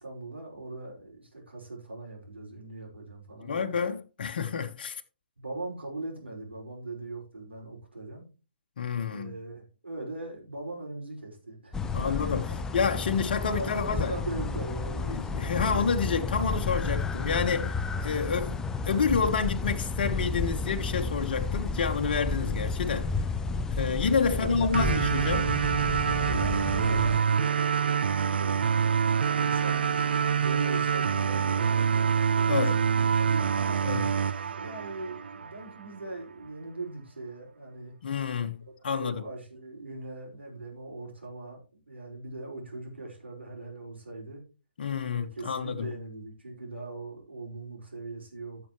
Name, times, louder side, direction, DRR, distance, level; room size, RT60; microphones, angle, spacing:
voice 1, 0.0-3.8 5.4-8.3 9.0-12.6 13.5-15.9 24.3-25.0 26.0-28.8 29.2-33.8 34.5-37.9 39.0-44.4 45.1-48.6, right 2 dB, 80° right, 5.1 m, -40 dB
voice 2, 3.4-5.0 8.8-9.3 11.9-12.5 12.7-14.1 15.1-17.7 18.0-18.6 18.8-23.1 23.8-25.5 32.5-32.8 33.8-34.1 38.0-39.2 44.8-45.9, left 5 dB, 55° left, 1.2 m, -29 dB
sound 1, 11.7-27.2, left 4 dB, 10° left, 0.5 m, -32 dB
sound 2, 24.7-35.7, right 7 dB, 65° right, 0.5 m, -26 dB
15.0 x 7.1 x 3.1 m
figure-of-eight pair, 135°, 6 cm